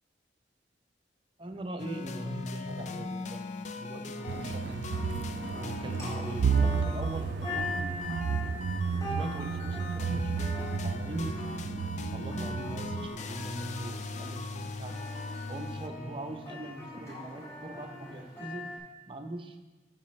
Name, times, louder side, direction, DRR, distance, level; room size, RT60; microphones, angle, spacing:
voice 1, 1.4-5.2 5.5-8.6 9.1-10.4 10.8-15.1 15.5-18.7 19.1-19.6, right 1 dB, 30° right, 5 dB, 0.6 m, -41 dB
sound 1, 1.8-15.9, left 3 dB, 40° left, 0.4 m, -40 dB
sound 2, 4.1-18.8, left 2 dB, 20° left, 2.3 m, -42 dB
sound 3, 4.3-13.1, right 5 dB, 75° right, 0.3 m, -32 dB
11.5 x 6.0 x 3.2 m, 1.2 s
head